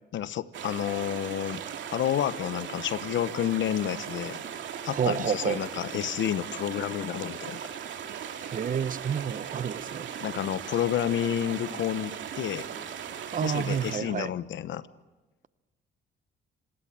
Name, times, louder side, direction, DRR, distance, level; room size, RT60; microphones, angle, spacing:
voice 1, 0.1-1.6 1.9-4.4 4.8-7.6 10.2-12.7 13.4-14.9, left 11 dB, 70° left, 1.1 m, -30 dB
sound 1, 0.5-14.0, right 8 dB, 70° right, 2.5 m, -38 dB
voice 2, 4.9-5.6 8.4-10.1 13.3-14.3, right 7 dB, 45° right, 0.9 m, -29 dB
26.5 x 19.5 x 8.9 m
cardioid pair, 90°, 20 cm